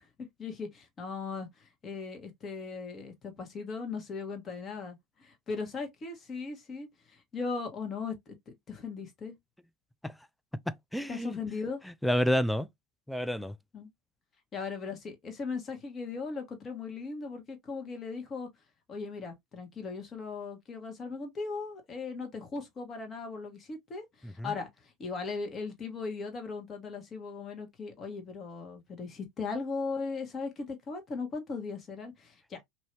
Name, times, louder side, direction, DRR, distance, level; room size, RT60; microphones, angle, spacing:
voice 1, 0.0-9.3 11.1-11.8 13.7-13.9 14.5-18.5 18.9-32.6, left 4 dB, 30° left, 1.4 m, -38 dB
voice 2, 10.9-11.4 12.0-12.7 13.1-13.5 24.2-24.5, equal, 5° left, 0.4 m, -29 dB
2.9 x 2.7 x 3.2 m
hypercardioid pair, 80°, 0 cm